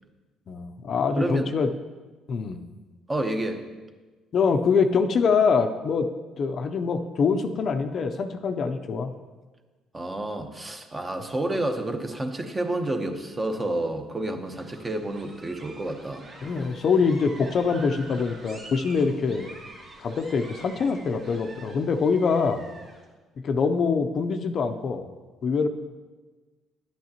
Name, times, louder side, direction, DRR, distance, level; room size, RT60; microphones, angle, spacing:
voice 1, 0.5-1.7 2.3-2.6 4.3-6.1 6.4-9.1 16.4-19.5 20.0-22.6 23.4-25.1 25.4-25.7, left 5 dB, 50° left, 7 dB, 0.5 m, -24 dB
voice 2, 1.2-1.5 3.1-3.6 9.9-16.3, right 1 dB, 20° right, 6 dB, 0.8 m, -29 dB
sound 1, 14.5-23.0, right 2 dB, 55° right, 2.1 m, -46 dB
11.5 x 9.2 x 2.9 m, 1.3 s
cardioid pair, 120°, 0 cm